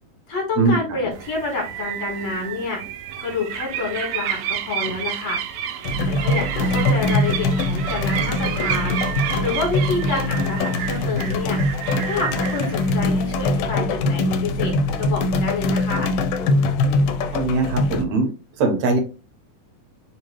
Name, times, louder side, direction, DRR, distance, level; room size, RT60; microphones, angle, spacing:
voice 1, 0.3-2.8 3.2-5.4 6.1-9.0 9.4-11.6 12.0-16.1, left 3 dB, 60° left, 0 dB, 2.4 m, -28 dB
sound 1, 1.1-13.6, right 10 dB, 90° right, 1.5 m, -30 dB
sound 2, 5.8-18.0, left 2 dB, 85° left, 2.2 m, -22 dB
voice 2, 17.3-18.3 18.6-19.0, right 3 dB, 70° right, 4 dB, 1.9 m, -20 dB
4.8 x 2.9 x 3.0 m, 0.32 s
omnidirectional pair, 3.7 m